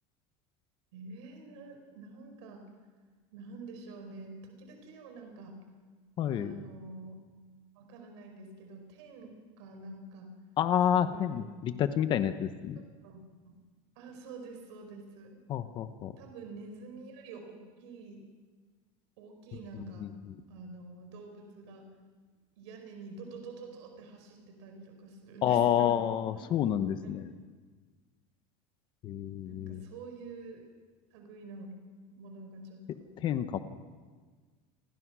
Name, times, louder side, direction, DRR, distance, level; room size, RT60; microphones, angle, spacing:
voice 1, 0.9-2.7 3.3-5.6 6.3-7.2 7.7-10.3 10.9-11.5 13.0-13.6 13.9-15.4 16.2-18.2 19.2-20.1 20.5-21.9 22.6-26.0 26.3-26.5 27.0-27.2 29.5-30.7 31.1-31.7 32.1-33.1, right 3 dB, 85° right, 4 dB, 5.0 m, -47 dB
voice 2, 6.2-6.5 10.6-12.8 15.5-16.1 20.0-20.1 25.4-27.3 29.0-29.8 33.2-33.6, left 10 dB, 35° left, 10 dB, 1.0 m, -29 dB
28.5 x 21.5 x 6.2 m, 1.5 s
cardioid pair, 170°, 14 cm